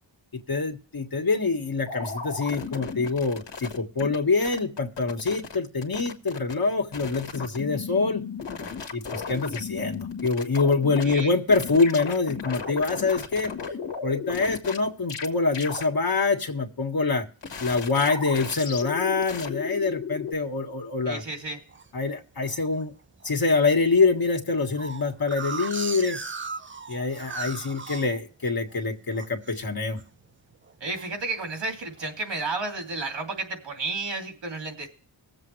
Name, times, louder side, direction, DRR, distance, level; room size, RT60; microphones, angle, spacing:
voice 1, 0.3-8.2 8.9-13.5 14.0-17.2 17.6-21.2 21.9-22.9 23.2-26.2 26.9-30.0, left 4 dB, 55° left, 3 dB, 1.7 m, -25 dB
sound 1, 1.9-4.2 4.4-5.6 5.8-6.5 6.9-11.2 11.5-14.8 15.1-15.3 15.5-15.8 17.4-20.3, left 5 dB, 70° left, 1.6 m, -35 dB
voice 2, 11.0-11.4 21.1-21.6 30.8-34.9, right 3 dB, 75° right, 3 dB, 2.8 m, -32 dB
sound 2, 21.2-21.9 22.4-22.8 23.2-23.3 23.6-23.7 24.0-28.8 29.1-29.6 29.9-30.2 30.5-31.5 32.0-32.4, right 4 dB, 25° right, 0.6 m, -37 dB
20.0 x 7.6 x 3.2 m, 0.41 s
wide cardioid pair, 90°, 44 cm